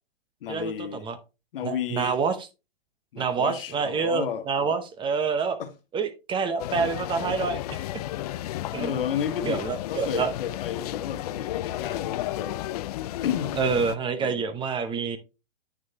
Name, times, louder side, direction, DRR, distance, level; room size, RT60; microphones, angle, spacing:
voice 1, 0.4-1.1 1.5-2.2 3.1-4.8 5.6-5.7 8.8-12.6 13.2-13.6 14.2-14.5, left 9 dB, 60° left, 1.4 m, -32 dB
voice 2, 1.6-2.4 3.2-5.6 5.9-7.8 8.7-8.9 9.4-10.3 13.6-15.2, right 5 dB, 15° right, 0.7 m, -27 dB
sound 1, 6.6-14.0, left 14 dB, 40° left, 0.4 m, -33 dB
8.9 x 6.3 x 2.8 m
hypercardioid pair, 130°, 31 cm